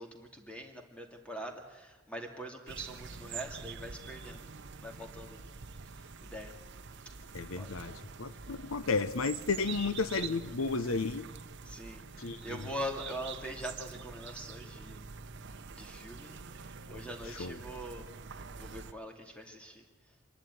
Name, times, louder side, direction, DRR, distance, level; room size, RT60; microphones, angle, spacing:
voice 1, 0.0-4.5 4.8-5.4 6.0-6.5 7.6-7.9 8.3-8.4 11.6-15.0 15.5-16.4 16.9-18.1 18.6-19.9, equal, 5° left, 2.5 m, -43 dB
sound 1, 2.7-18.9, right 5 dB, 60° right, 0.9 m, -46 dB
voice 2, 7.3-11.3 12.2-12.7 17.4-17.6, left 4 dB, 90° left, 0.8 m, -33 dB
26.0 x 11.0 x 9.4 m
head